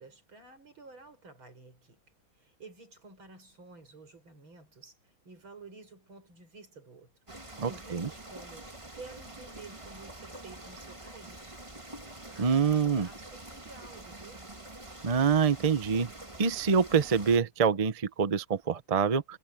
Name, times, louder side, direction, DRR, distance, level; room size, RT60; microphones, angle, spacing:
voice 1, 0.0-2.0 2.3-7.1 7.4-11.6 12.3-14.4, right 3 dB, 85° right, 7.5 m, -51 dB
sound 1, 7.3-17.4, right 1 dB, 15° right, 1.9 m, -46 dB
voice 2, 7.6-8.1 12.4-13.1 15.0-16.1 16.4-19.4, right 6 dB, 50° right, 0.4 m, -26 dB
omnidirectional pair, 2.2 m